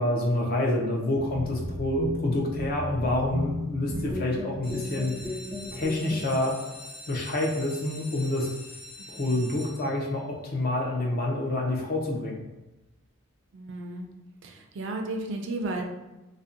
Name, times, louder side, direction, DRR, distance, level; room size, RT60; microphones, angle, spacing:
voice 1, 0.0-5.4 5.7-6.6 7.1-8.5 9.1-12.4, left 1 dB, 40° left, -1 dB, 0.4 m, -27 dB
sound 1, 1.1-6.2, left 1 dB, 5° left, 0.7 m, -35 dB
voice 2, 3.9-4.4 9.0-9.4 13.5-14.1 14.4-15.8, right 2 dB, 55° right, 3 dB, 0.3 m, -35 dB
sound 2, 4.6-10.2 10.9-11.3 11.7-11.8 12.1-12.2 12.6-12.7, left 2 dB, 65° left, 1.1 m, -44 dB
2.5 x 2.0 x 2.5 m, 1.0 s
head